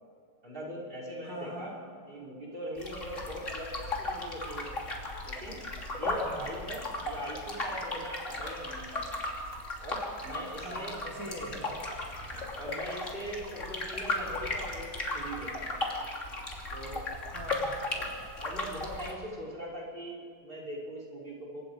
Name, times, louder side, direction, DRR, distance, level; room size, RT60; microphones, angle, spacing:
voice 1, 0.4-4.8 5.2-5.6 5.9-9.1 9.8-11.0 11.6-11.8 12.3-15.8 16.7-17.1 17.9-21.6, equal, 30° right, -3 dB, 6.0 m, -41 dB
voice 2, 1.2-1.7 6.0-6.4 10.6-11.7 17.3-17.7, right 1 dB, 50° right, -4 dB, 3.8 m, -42 dB
sound 1, 2.8-19.1, left 2 dB, 45° left, 3.4 m, -36 dB
28.5 x 24.5 x 5.1 m, 2.2 s
omnidirectional pair, 1.8 m